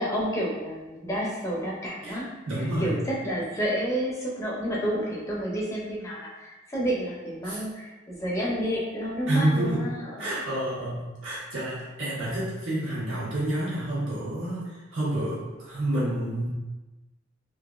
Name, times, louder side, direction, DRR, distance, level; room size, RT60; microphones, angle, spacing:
voice 1, 0.0-2.3 2.5-10.3, equal, 15° left, -5 dB, 0.6 m, -30 dB
voice 2, 2.0-3.0 7.4-7.6 9.3-9.8 10.2-16.5, right 1 dB, 85° right, -9 dB, 1.4 m, -29 dB
3.7 x 2.5 x 2.4 m, 1.1 s
head